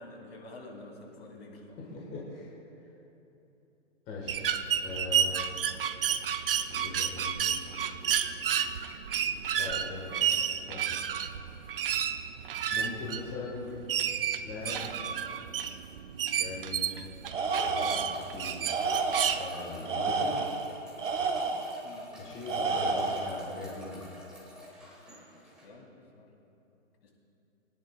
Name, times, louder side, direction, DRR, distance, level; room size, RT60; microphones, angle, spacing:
voice 1, 0.0-1.8 4.2-4.6 7.1-7.3 21.8-22.1 25.3-26.3 27.0-27.1, left 2 dB, 50° left, -1 dB, 2.6 m, -50 dB
voice 2, 1.9-2.5 4.1-4.4 4.8-5.4 6.7-7.5 9.4-10.2 10.5-10.8 12.7-13.7 14.4-14.9 16.3-16.9 17.6-18.7 19.3-20.4 22.2-24.0, left 3 dB, 15° left, -5 dB, 1.3 m, -40 dB
sound 1, 4.3-19.4, right 8 dB, 45° right, 0.5 m, -31 dB
Tools, 17.3-18.2 18.7-19.5 19.9-21.8 22.5-23.4, right 4 dB, 70° right, 1.4 m, -30 dB
sound 2, 18.1-25.7, left 1 dB, ahead, 1.3 m, -50 dB
22.0 x 10.5 x 2.2 m, 2.9 s
hypercardioid pair, 155°, 38 cm